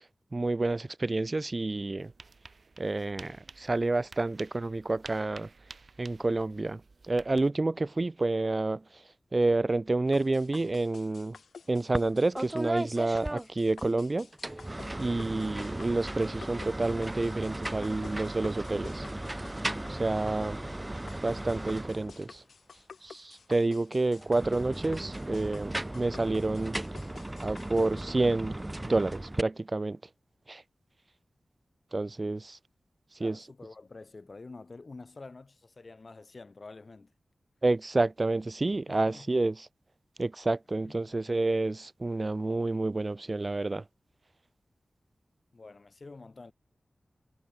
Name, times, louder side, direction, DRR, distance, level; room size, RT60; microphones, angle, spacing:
voice 1, 0.3-2.1 2.8-5.5 6.0-6.8 7.1-8.8 9.3-11.4 11.7-14.3 15.0-19.1 19.9-20.6 21.2-22.4 23.0-26.8 27.4-28.6 28.8-30.0 30.5-30.6 31.9-32.6 33.2-33.4 37.6-39.7 40.2-43.8, right 2 dB, 40° right, 0.4 m, -29 dB
sound 1, 2.0-7.5, right 4 dB, 60° right, 1.4 m, -51 dB
sound 2, 10.1-28.0, left 5 dB, 85° left, 3.5 m, -50 dB
sound 3, 11.9-12.1 12.4-13.9 14.3-22.4 24.1-29.4, right 1 dB, 20° right, 1.6 m, -37 dB
voice 2, 33.2-37.1 38.9-39.4 40.8-41.2 45.5-46.5, left 3 dB, 50° left, 2.1 m, -48 dB
cardioid pair, 55°, 0 cm